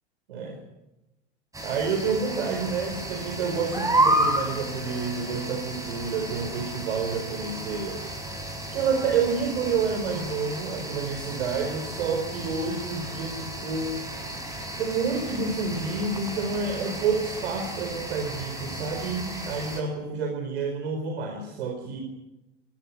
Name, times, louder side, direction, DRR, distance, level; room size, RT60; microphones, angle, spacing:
sound 1, 1.5-19.8, right 1 dB, 10° right, 6.0 m, -32 dB
voice 1, 1.6-8.0 8.7-14.0 14.8-22.0, right 5 dB, 75° right, 4 dB, 4.4 m, -29 dB
22.5 x 15.0 x 9.5 m, 0.96 s
hypercardioid pair, 100°, 33 cm